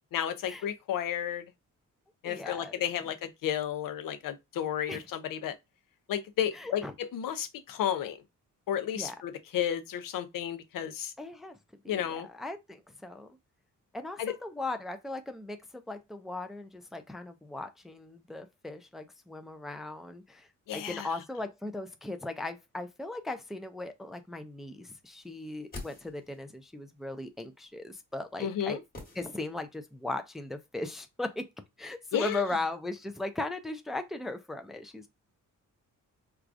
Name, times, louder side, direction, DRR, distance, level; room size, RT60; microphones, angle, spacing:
voice 1, 0.1-1.5 2.2-5.6 6.1-8.2 8.7-11.1 11.9-12.3 14.2-14.4 20.7-21.1 28.4-28.8 32.1-32.4, left 10 dB, 90° left, 0.6 m, -32 dB
voice 2, 2.2-2.8 4.9-5.0 6.6-6.9 8.9-9.2 11.2-11.6 11.8-13.3 13.9-28.8 29.2-31.5 31.8-35.1, left 2 dB, ahead, 0.3 m, -38 dB
sound 1, 25.3-26.6 28.9-29.9 30.1-30.2, left 2 dB, 30° left, 1.2 m, -46 dB
4.6 x 2.3 x 2.5 m
wide cardioid pair, 130°, 32 cm